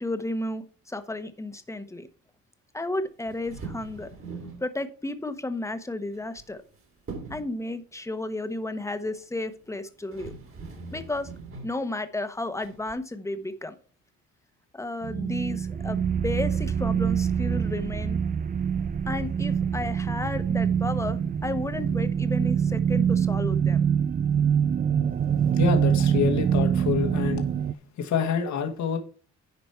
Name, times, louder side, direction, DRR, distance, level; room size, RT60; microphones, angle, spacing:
voice 1, 0.0-2.1 2.7-4.1 4.6-6.6 7.3-10.3 10.9-11.3 11.6-13.7 14.7-18.2 19.0-23.8, left 2 dB, 10° left, 1.1 m, -33 dB
sound 1, 3.2-4.7 6.1-6.7 7.1-7.6 9.6-9.7 10.1-11.8 12.6-12.9, right 4 dB, 45° right, 2.5 m, -41 dB
sound 2, 15.0-27.7, right 8 dB, 30° right, 0.4 m, -25 dB
voice 2, 25.5-27.4 28.0-29.0, left 6 dB, 65° left, 1.7 m, -26 dB
10.5 x 5.1 x 4.5 m
cardioid pair, 90°, 30 cm